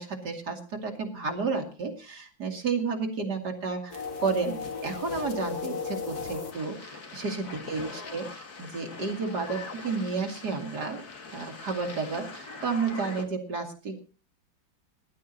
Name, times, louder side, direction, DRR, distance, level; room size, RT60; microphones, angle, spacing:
voice 1, 0.0-11.0 11.3-14.0, right 4 dB, 55° right, 2 dB, 3.1 m, -32 dB
sound 1, 3.9-13.2, left 5 dB, 50° left, 2.4 m, -38 dB
21.0 x 12.0 x 2.9 m, 0.35 s
omnidirectional pair, 2.2 m